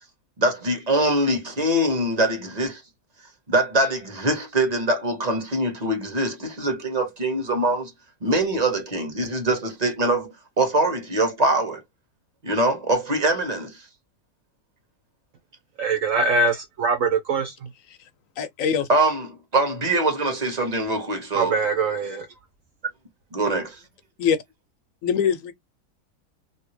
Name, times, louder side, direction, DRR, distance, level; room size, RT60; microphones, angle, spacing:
voice 1, 0.4-2.8 3.5-7.9 8.2-11.8 12.4-13.8 18.9-21.6 23.3-23.8, right 1 dB, 30° right, 1.0 m, -23 dB
voice 2, 15.8-17.5 21.3-22.3, right 3 dB, 60° right, 1.0 m, -23 dB
voice 3, 18.4-18.9 24.2-24.4 25.0-25.5, left 7 dB, 65° left, 0.9 m, -22 dB
2.8 x 2.7 x 3.0 m
omnidirectional pair, 1.7 m